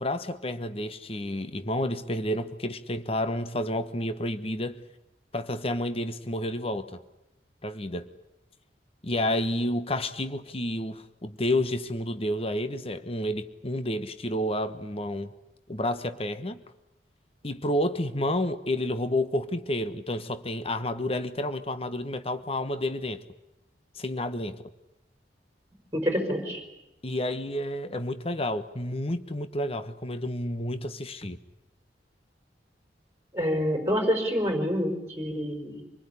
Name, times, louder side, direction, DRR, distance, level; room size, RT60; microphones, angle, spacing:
voice 1, 0.0-4.8 5.3-7.0 7.6-8.1 9.0-15.3 15.7-16.6 17.4-23.2 24.0-24.7 27.0-31.4, left 1 dB, 35° left, 1.3 m, -30 dB
voice 2, 25.9-26.6 33.3-35.8, equal, 15° right, 5.0 m, -27 dB
26.5 x 20.5 x 9.9 m
head